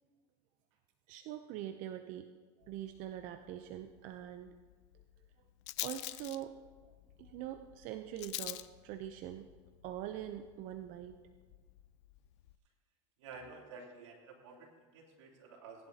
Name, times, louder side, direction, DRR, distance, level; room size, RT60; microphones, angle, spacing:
voice 1, 1.1-2.3 2.6-4.5 5.8-6.5 7.2-9.5 9.8-11.2, right 11 dB, 55° right, 8 dB, 0.6 m, -43 dB
Rattle, 2.6-12.6, left 17 dB, 75° left, 0.5 m, -48 dB
voice 2, 13.2-15.9, right 4 dB, 85° right, -1 dB, 3.0 m, -51 dB
18.5 x 10.5 x 2.8 m, 1.5 s
supercardioid pair, 110°, 15 cm